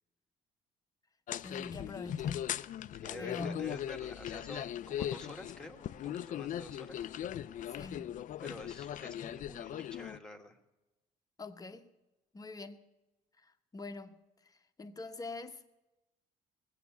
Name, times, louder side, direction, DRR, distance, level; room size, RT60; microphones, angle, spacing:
sound 1, 1.3-10.2, left 11 dB, 50° left, 0.4 m, -39 dB
voice 1, 1.4-2.5 3.2-3.7 7.7-8.2 11.4-11.9 12.3-12.8 13.7-14.2 14.8-15.7, left 3 dB, 20° left, 0.9 m, -44 dB
voice 2, 3.0-7.0 8.4-10.6, left 1 dB, 5° left, 1.4 m, -48 dB
19.5 x 8.2 x 7.0 m
cardioid pair, 110°, 17 cm